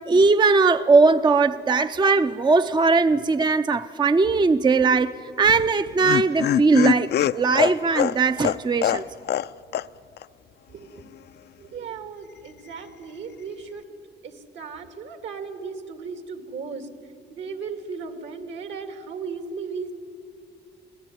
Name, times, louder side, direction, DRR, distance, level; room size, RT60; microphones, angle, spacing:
voice 1, 0.1-5.1 5.4-7.1 7.3-9.0, right 4 dB, 20° right, 11 dB, 0.5 m, -19 dB
Laughter, 5.4-9.5 9.7-9.9 10.2-10.3, left 11 dB, 55° left, 0.5 m, -24 dB
voice 2, 10.7-11.0 11.6-13.9 14.2-16.9 17.3-19.9, right 5 dB, 70° right, 7 dB, 2.3 m, -36 dB
25.0 x 16.0 x 9.5 m, 2.4 s
cardioid pair, 90°, 20 cm